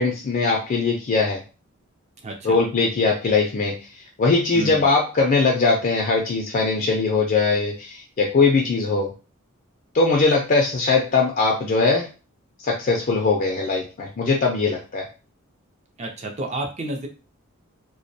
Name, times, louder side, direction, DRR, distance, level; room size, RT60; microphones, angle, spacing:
voice 1, 0.0-1.4 2.4-3.8 4.2-9.1 9.9-12.1 12.6-15.1, left 4 dB, 40° left, 0 dB, 0.4 m, -20 dB
voice 2, 2.2-2.6 4.5-4.9 16.0-17.1, right 2 dB, 30° right, 2 dB, 0.5 m, -30 dB
2.2 x 2.1 x 2.6 m, 0.33 s
head